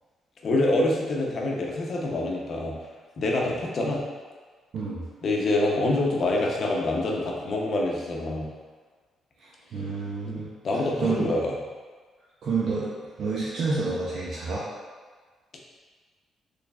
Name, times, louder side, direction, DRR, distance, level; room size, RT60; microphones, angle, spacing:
voice 1, 0.4-2.8 3.2-4.0 5.2-8.5 10.3-11.6, left 2 dB, 55° left, -1 dB, 0.7 m, -26 dB
voice 2, 4.7-5.0 9.4-10.5 11.0-11.3 12.4-12.9 13.2-14.6, right 4 dB, 65° right, -7 dB, 0.6 m, -29 dB
4.0 x 3.2 x 2.3 m, 1.4 s
cardioid pair, 90°, 0 cm